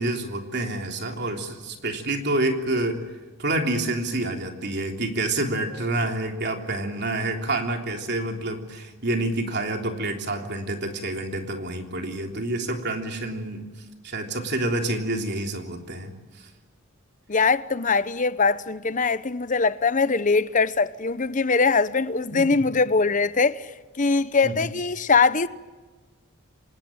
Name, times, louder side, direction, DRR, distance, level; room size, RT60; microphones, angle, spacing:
voice 1, 0.0-3.0 3.4-13.7 14.0-16.1 22.3-22.6 24.4-24.7, right 2 dB, 50° right, 3.4 m, -28 dB
voice 2, 17.3-23.7 24.0-25.5, left 4 dB, 35° left, 0.8 m, -22 dB
26.0 x 19.5 x 8.9 m
head